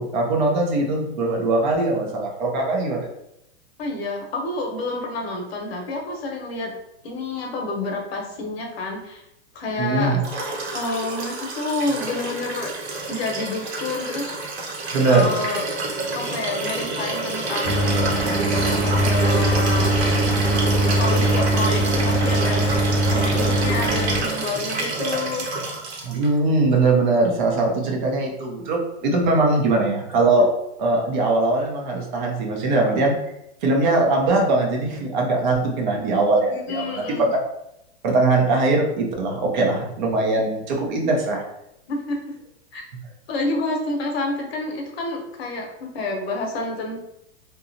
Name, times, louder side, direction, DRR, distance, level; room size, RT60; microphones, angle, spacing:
voice 1, 0.0-3.1 9.8-10.2 14.9-15.3 26.0-30.5 30.8-33.1 33.6-37.3 38.0-41.4, right 2 dB, 45° right, 0 dB, 0.6 m, -21 dB
voice 2, 3.8-6.7 7.0-9.2 9.5-10.2 10.7-12.7 13.1-14.3 15.1-15.6 16.1-18.0 18.2-18.4 18.7-19.9 20.9-25.5 36.5-37.3 41.9-42.2 42.7-42.8 43.3-47.0, left 2 dB, 60° left, 1 dB, 0.8 m, -28 dB
Liquid, 10.2-26.3 27.6-27.7, right 2 dB, 70° right, 1.0 m, -28 dB
Mechanical fan, 17.6-24.2, right 1 dB, 5° left, 0.9 m, -21 dB
2.8 x 2.2 x 2.5 m, 0.84 s
supercardioid pair, 165°, 34 cm